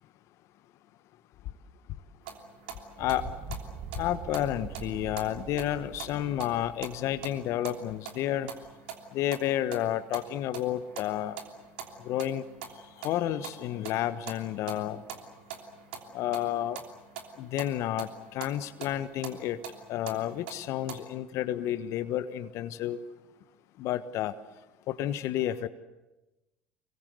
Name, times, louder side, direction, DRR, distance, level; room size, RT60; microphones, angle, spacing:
sound 1, 2.2-21.0, right 7 dB, 75° right, 3.1 m, -45 dB
voice 1, 3.0-3.4 4.0-8.5 9.1-11.4 12.0-12.4 13.0-15.0 16.1-16.8 17.4-19.6 19.9-23.0 23.8-24.3 24.9-25.7, left 12 dB, 60° left, 12 dB, 1.3 m, -31 dB
sound 2, 3.0-7.5, right 8 dB, 55° right, 1.6 m, -44 dB
26.5 x 23.0 x 8.0 m, 1.0 s
hypercardioid pair, 65°, 6 cm